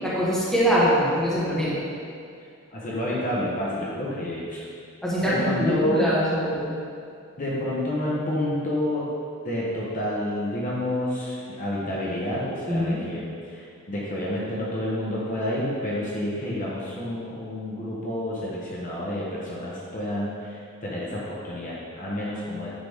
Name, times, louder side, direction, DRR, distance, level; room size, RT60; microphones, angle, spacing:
voice 1, 0.0-1.9 5.0-6.7 12.7-13.0, equal, ahead, -9 dB, 1.4 m, -23 dB
voice 2, 2.7-4.7 5.2-6.1 7.4-9.1 9.4-22.7, left 1 dB, 35° left, -6 dB, 1.0 m, -29 dB
9.8 x 3.9 x 3.6 m, 2.4 s
head